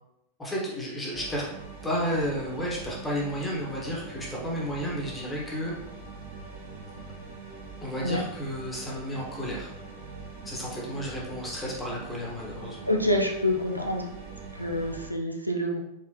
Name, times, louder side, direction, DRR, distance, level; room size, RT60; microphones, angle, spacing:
voice 1, 0.4-1.4 1.8-5.7 7.8-9.7 10.4-12.8, equal, 10° left, -4 dB, 1.5 m, -32 dB
sound 1, 1.1-15.1, right 4 dB, 65° right, 1.3 m, -43 dB
voice 2, 12.9-14.0 14.5-15.8, left 1 dB, 90° right, 2 dB, 0.5 m, -27 dB
4.3 x 4.1 x 3.0 m, 0.80 s
figure-of-eight pair, 90°, 0 cm